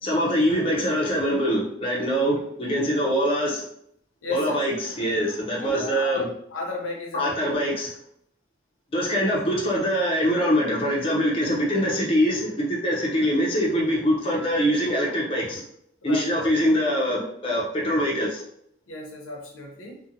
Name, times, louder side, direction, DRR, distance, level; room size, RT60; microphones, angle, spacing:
voice 1, 0.0-3.6 4.3-6.3 7.1-7.9 8.9-15.6 16.0-18.4, equal, 30° left, -3 dB, 0.5 m, -23 dB
voice 2, 4.2-4.6 5.6-6.2 6.5-7.7 16.0-16.5 18.9-20.0, left 3 dB, 85° left, 0 dB, 0.7 m, -34 dB
2.7 x 2.1 x 2.5 m, 0.69 s
head